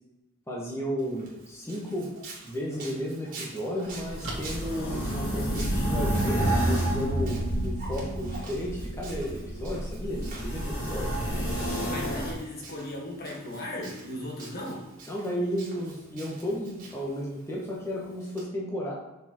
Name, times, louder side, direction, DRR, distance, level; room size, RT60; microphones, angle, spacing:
voice 1, 0.5-2.1 2.4-11.2 15.1-18.9, equal, 15° left, -5 dB, 1.3 m, -33 dB
Walk footsteps, 1.0-18.4, right 3 dB, 40° right, 2.1 m, -48 dB
sound 1, 2.7-5.7, right 2 dB, 75° right, 1.8 m, -44 dB
sound 2, 3.9-12.3, right 1 dB, 80° left, 2.2 m, -29 dB
voice 2, 11.8-14.9, left 1 dB, 45° left, -2 dB, 1.7 m, -37 dB
6.2 x 5.2 x 4.5 m, 1.0 s
head